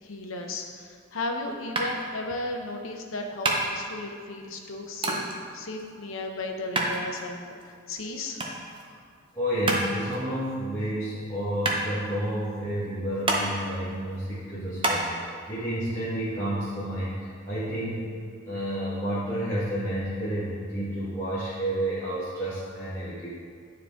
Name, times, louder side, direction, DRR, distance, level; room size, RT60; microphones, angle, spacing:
voice 1, 0.0-8.4, left 2 dB, 75° left, 3 dB, 0.8 m, -35 dB
sound 1, 1.7-15.0, right 2 dB, 25° right, 0.7 m, -31 dB
voice 2, 9.3-18.1 18.4-23.3, right 1 dB, 15° left, -14 dB, 1.6 m, -30 dB
9.7 x 4.7 x 3.7 m, 2.1 s
head